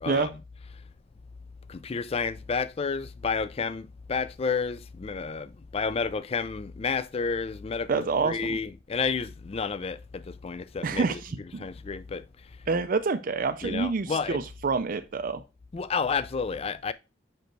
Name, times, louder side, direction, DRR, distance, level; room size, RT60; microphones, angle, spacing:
voice 1, 0.0-0.4 1.7-12.2 13.6-14.5 15.7-16.9, left 5 dB, 30° left, 0.3 m, -31 dB
voice 2, 7.9-8.6 10.8-11.4 12.7-15.4, right 4 dB, 45° right, 0.4 m, -27 dB
5.3 x 5.1 x 4.5 m
head